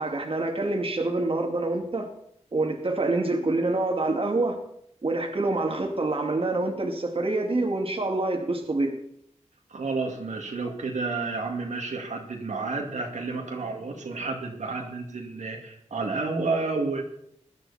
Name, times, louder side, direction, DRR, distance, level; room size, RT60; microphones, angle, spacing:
voice 1, 0.0-2.1 2.5-4.6 5.0-9.0, right 2 dB, 50° right, 2 dB, 2.3 m, -26 dB
voice 2, 9.7-17.0, right 3 dB, 80° right, 1 dB, 2.3 m, -30 dB
17.0 x 11.5 x 4.3 m, 0.72 s
wide cardioid pair, 65°, 12 cm